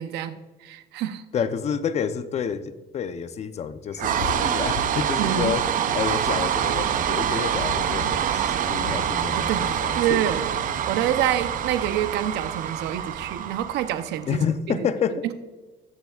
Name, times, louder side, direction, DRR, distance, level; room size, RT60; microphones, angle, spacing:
voice 1, 0.0-1.3 5.2-5.6 9.3-10.5 10.9-14.4 14.7-14.9 15.2-15.3, right 11 dB, 85° right, 10 dB, 0.8 m, -27 dB
voice 2, 1.3-5.7 5.9-10.2 14.3-15.2, left 7 dB, 40° left, 11 dB, 0.7 m, -29 dB
sound 1, 4.0-14.3, right 9 dB, 55° right, 0.6 m, -26 dB
sound 2, 4.1-9.2, left 11 dB, 90° left, 0.4 m, -38 dB
sound 3, 4.1-12.2, left 3 dB, 60° left, 1.0 m, -45 dB
20.5 x 6.9 x 2.4 m, 1.2 s
cardioid pair, 130°, 17 cm